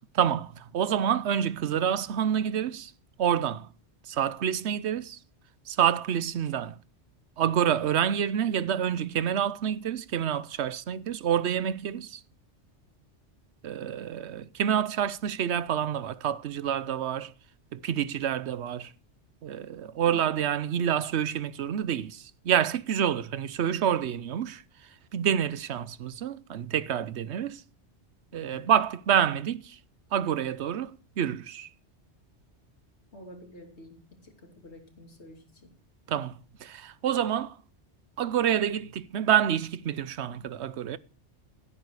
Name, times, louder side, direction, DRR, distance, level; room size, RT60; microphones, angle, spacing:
voice 1, 0.1-2.9 3.2-3.7 4.1-5.2 5.7-6.8 7.4-12.2 13.6-17.3 17.7-18.9 19.4-24.6 25.1-27.6 28.3-29.8 30.1-31.7 36.1-37.6 38.2-41.0, right 9 dB, 70° right, 1.0 m, -28 dB
voice 2, 20.0-20.5 28.3-28.7 33.1-35.7 38.8-38.9, left 1 dB, 70° left, 3.1 m, -49 dB
16.0 x 8.8 x 4.8 m
omnidirectional pair, 1.2 m